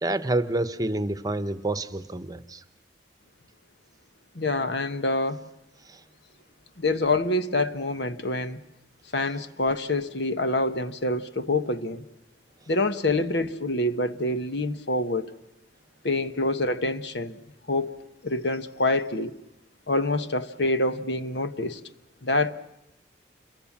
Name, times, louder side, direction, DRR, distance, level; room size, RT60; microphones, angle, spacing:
voice 1, 0.0-2.6 5.9-6.0, right 2 dB, 20° right, 1.0 m, -28 dB
voice 2, 4.3-5.5 6.8-8.6 9.1-12.0 12.7-15.3 16.0-17.4 17.7-17.9 18.2-19.3 19.9-21.8 22.2-22.5, left 2 dB, 65° left, 1.2 m, -26 dB
28.5 x 23.0 x 7.3 m
head